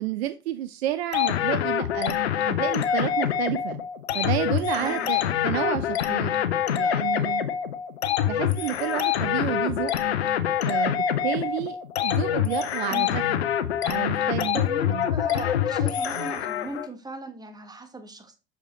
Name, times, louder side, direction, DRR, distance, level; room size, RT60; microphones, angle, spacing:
voice 1, 0.0-2.2 2.5-3.8 4.1-6.3 6.7-7.5 8.3-9.9 10.7-11.8 12.0-13.4 13.8-14.6 14.9-15.1 16.2-16.3, right 13 dB, 75° right, 0.5 m, -30 dB
sound 1, 1.1-16.9, left 9 dB, 80° left, 0.6 m, -25 dB
voice 2, 4.8-5.1 12.9-13.2 14.5-18.3, right 2 dB, 10° right, 1.3 m, -37 dB
6.3 x 4.9 x 3.1 m
hypercardioid pair, 70°, 31 cm